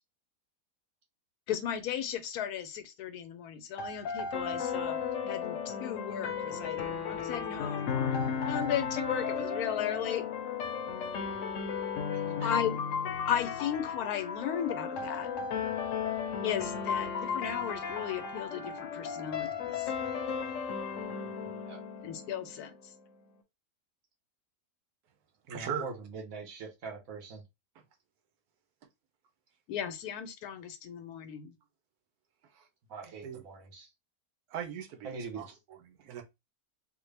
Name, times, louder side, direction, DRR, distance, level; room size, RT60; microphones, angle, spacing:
voice 1, 1.5-5.0 5.2-8.1 8.4-10.2 12.4-12.8 13.3-15.3 16.4-19.5 19.8-19.9 22.0-22.7 29.7-31.5, left 9 dB, 90° left, 1.1 m, -35 dB
sound 1, 3.8-22.7, left 6 dB, 65° left, 0.9 m, -35 dB
voice 2, 12.1-12.5 21.2-21.8 25.5-27.4 32.9-33.9 35.0-35.5, right 4 dB, 65° right, 1.4 m, -43 dB
voice 3, 25.5-25.9 33.2-33.4 34.5-36.2, right 8 dB, 90° right, 1.2 m, -39 dB
3.7 x 2.1 x 3.3 m
omnidirectional pair, 1.6 m